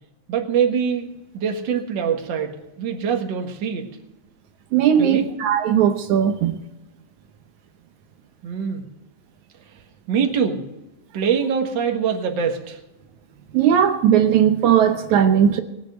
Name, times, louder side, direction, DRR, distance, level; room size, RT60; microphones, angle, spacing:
voice 1, 0.3-1.1 1.3-3.9 5.0-5.3 8.4-8.8 10.1-10.7 11.1-12.8, right 7 dB, 45° right, 1.9 m, -23 dB
voice 2, 4.7-6.6 13.5-15.6, right 9 dB, 75° right, 2.2 m, -17 dB
19.0 x 8.0 x 7.9 m
omnidirectional pair, 3.5 m